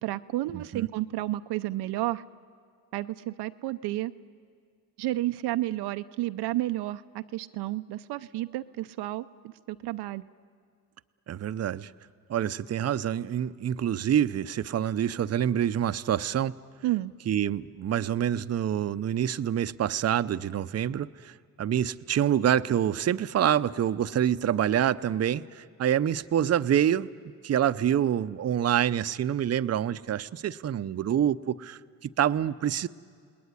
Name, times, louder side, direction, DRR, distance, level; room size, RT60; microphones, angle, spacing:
voice 1, 0.0-2.2 2.9-4.1 5.0-10.3 16.8-17.1, right 16 dB, 90° right, 10 dB, 0.7 m, -31 dB
voice 2, 0.5-0.9 11.3-11.9 12.3-16.5 17.3-27.1 27.4-32.9, right 10 dB, 40° right, 12 dB, 0.6 m, -26 dB
29.5 x 20.0 x 9.6 m, 2.1 s
cardioid pair, 90°, 38 cm